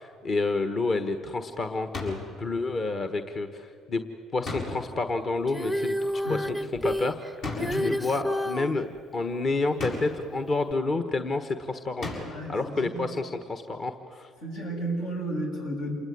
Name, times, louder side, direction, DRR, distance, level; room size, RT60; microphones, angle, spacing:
voice 1, 0.0-4.0 4.3-6.6 6.8-7.2 7.7-8.9 9.1-12.2 12.5-14.3, left 3 dB, 45° left, 8 dB, 1.4 m, -29 dB
sound 1, 1.9-2.4 4.4-5.1 7.4-8.0 9.8-10.3 12.0-12.6, left 2 dB, 70° left, 7.3 m, -35 dB
Female singing, 5.5-8.7 10.7-10.8, equal, 10° left, 0.7 m, -29 dB
voice 2, 7.7-8.0 12.3-13.2 14.4-15.9, right 1 dB, 85° left, 0 dB, 6.9 m, -33 dB
28.0 x 20.0 x 9.5 m, 2.4 s
supercardioid pair, 85°, 0 cm